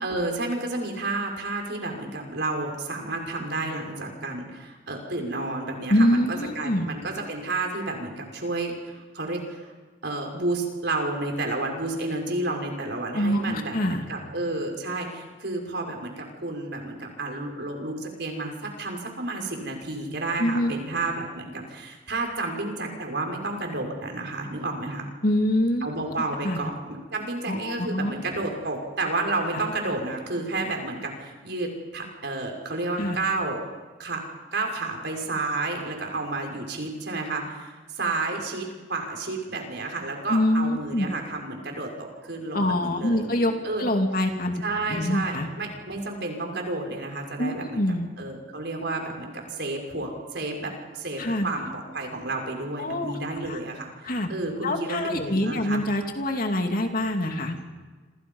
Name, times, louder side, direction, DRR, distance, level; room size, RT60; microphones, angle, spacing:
voice 1, 0.0-9.7 10.0-25.1 25.8-33.6 34.0-34.2 34.5-43.3 43.6-43.8 44.6-47.8 48.2-53.9 54.3-55.8, right 2 dB, 60° right, 2 dB, 5.9 m, -31 dB
voice 2, 5.9-6.9 13.1-14.1 20.4-20.7 25.2-25.9 26.4-26.6 27.5-28.1 33.0-33.2 40.3-41.1 42.5-43.5 43.8-44.6 44.9-45.5 47.4-48.1 51.2-51.5 52.8-53.1 53.5-53.6 54.0-54.3 54.6-57.6, left 1 dB, 50° left, 3 dB, 2.7 m, -25 dB
28.0 x 27.0 x 5.6 m, 1.4 s
head